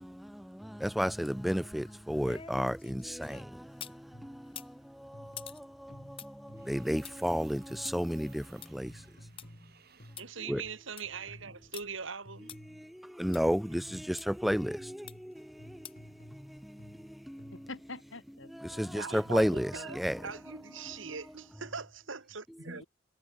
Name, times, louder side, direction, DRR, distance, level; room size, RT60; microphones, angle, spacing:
voice 1, 0.0-9.1 10.5-10.6 12.7-17.6 18.5-20.3, equal, ahead, 0.3 m, -33 dB
sound 1, 1.6-4.0 4.4-9.5 9.8-9.9 10.2-10.3 10.7-11.2 11.7-11.8 12.5-12.6 13.3-13.4 14.2-14.3 15.1-15.4 15.8-16.1 16.5-16.6, left 8 dB, 30° left, 1.0 m, -49 dB
sound 2, 4.1-4.6 5.1-6.9 7.7-8.2 8.9-10.9 11.3-11.8 12.2-13.0 13.9-17.9, equal, 45° left, 4.8 m, -54 dB
sound 3, 6.5-20.6, right 7 dB, 50° right, 7.9 m, -66 dB
voice 2, 10.2-12.5 18.9-22.8, right 5 dB, 75° right, 2.3 m, -41 dB
voice 3, 17.5-19.0 22.7-22.9, left 3 dB, 70° left, 3.9 m, -47 dB
head